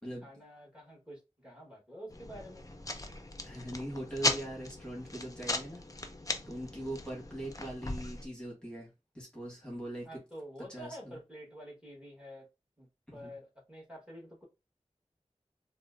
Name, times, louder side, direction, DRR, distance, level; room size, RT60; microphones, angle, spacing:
voice 1, 0.2-2.6 10.0-12.5 12.8-12.9 13.1-14.4, equal, 10° right, 1.6 m, -48 dB
sound 1, 2.1-8.3, left 2 dB, 30° left, 0.6 m, -37 dB
voice 2, 3.4-5.8 6.5-10.2 10.7-11.2 13.1-13.3, right 1 dB, 10° left, 1.5 m, -41 dB
4.1 x 2.2 x 2.4 m
wide cardioid pair, 45°, 12 cm